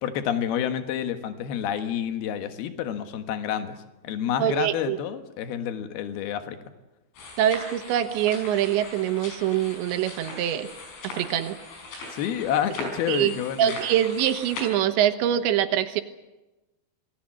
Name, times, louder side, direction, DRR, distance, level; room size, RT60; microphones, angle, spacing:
voice 1, 0.0-3.8 4.0-6.6 12.1-13.8, left 9 dB, 65° left, 8 dB, 3.1 m, -29 dB
voice 2, 4.4-5.0 7.4-10.7 11.0-11.6 13.1-13.3 13.6-16.0, right 11 dB, 80° right, 9 dB, 3.4 m, -24 dB
sound 1, 7.1-14.7, left 2 dB, 85° left, 7.8 m, -39 dB
27.0 x 19.5 x 7.6 m, 1.1 s
omnidirectional pair, 5.2 m